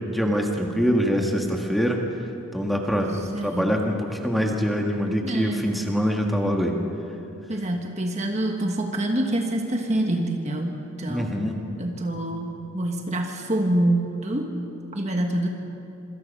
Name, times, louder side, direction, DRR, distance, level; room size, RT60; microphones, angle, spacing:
voice 1, 0.1-2.0 2.5-3.1 3.4-6.8 11.1-11.6, equal, ahead, 1 dB, 1.8 m, -24 dB
voice 2, 2.9-3.8 5.2-5.7 7.5-11.4 11.8-14.5 14.9-15.5, right 1 dB, 30° right, 3 dB, 1.5 m, -26 dB
26.5 x 25.0 x 5.5 m, 2.8 s
head